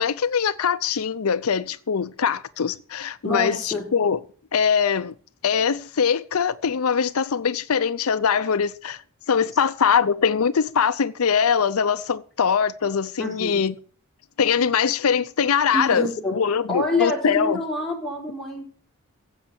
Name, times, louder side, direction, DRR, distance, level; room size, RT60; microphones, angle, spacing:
voice 1, 0.0-4.2 4.5-5.1 5.4-9.0 9.3-13.7 14.4-17.6, left 6 dB, 75° left, 0.6 m, -22 dB
voice 2, 3.2-3.8 13.2-13.6 15.7-16.3 16.7-18.6, left 2 dB, ahead, 4.4 m, -26 dB
16.0 x 7.9 x 7.0 m
head